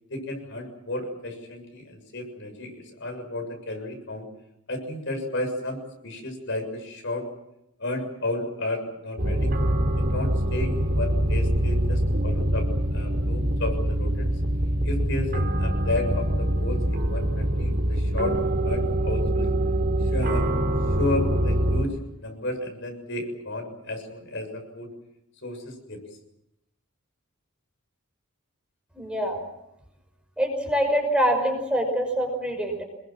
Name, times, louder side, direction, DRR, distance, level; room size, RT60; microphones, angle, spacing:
voice 1, 0.1-4.2 4.7-7.2 7.8-9.5 10.0-12.6 12.9-14.3 14.8-18.3 18.6-19.5 20.0-20.5 21.0-24.9 25.4-26.0, left 2 dB, 60° left, 4 dB, 7.0 m, -32 dB
sound 1, 9.2-21.8, right 1 dB, 45° right, 3.4 m, -24 dB
voice 2, 28.9-29.4 30.4-32.8, equal, 5° right, 3 dB, 5.8 m, -25 dB
28.0 x 22.0 x 7.5 m, 0.85 s
head